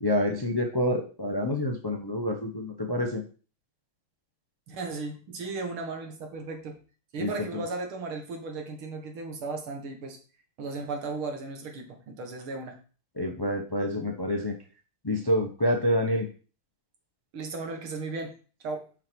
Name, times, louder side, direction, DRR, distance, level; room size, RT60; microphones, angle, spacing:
voice 1, 0.0-3.2 7.2-7.6 13.2-14.5 15.0-16.3, left 1 dB, 35° left, 2 dB, 0.3 m, -27 dB
voice 2, 4.7-6.8 7.1-10.2 10.6-12.8 17.3-18.3 18.6-18.9, right 3 dB, 75° right, 3 dB, 2.4 m, -35 dB
6.7 x 5.8 x 4.5 m, 0.38 s
omnidirectional pair, 2.3 m